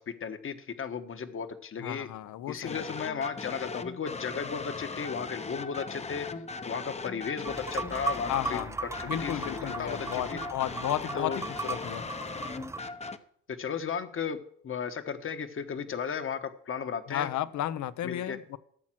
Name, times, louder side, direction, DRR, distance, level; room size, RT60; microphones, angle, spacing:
voice 1, 0.0-2.1 2.5-6.3 6.6-8.6 9.0-10.4 11.1-11.4 13.5-14.4 14.6-17.3 18.0-18.4, left 6 dB, 45° left, 1.2 m, -35 dB
voice 2, 1.8-2.8 8.3-8.8 9.0-12.0 17.1-18.6, left 12 dB, 70° left, 0.7 m, -33 dB
sound 1, 2.7-13.2, left 4 dB, 20° left, 0.8 m, -39 dB
sound 2, 7.4-12.8, right 3 dB, 10° right, 0.4 m, -37 dB
13.5 x 7.4 x 6.1 m
cardioid pair, 90°, 30 cm